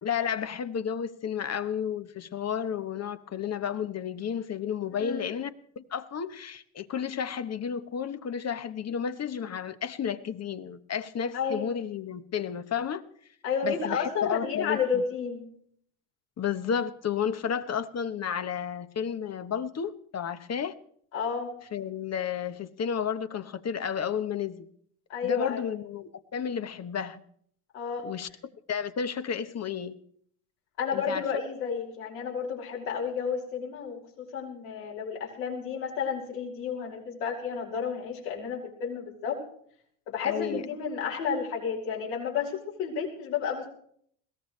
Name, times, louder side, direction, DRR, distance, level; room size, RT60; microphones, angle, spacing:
voice 1, 0.0-5.5 5.8-13.0 13.6-15.0 16.4-20.8 21.7-24.6 25.2-27.2 28.0-28.3 28.7-30.0 30.9-31.2 40.2-40.6, left 7 dB, 35° left, 1.1 m, -32 dB
voice 2, 11.3-11.7 13.4-15.4 21.1-21.5 25.1-25.7 27.7-28.1 30.8-39.4 40.1-43.7, left 6 dB, 80° left, 5.8 m, -31 dB
21.5 x 17.0 x 3.2 m
supercardioid pair, 80°, 45 cm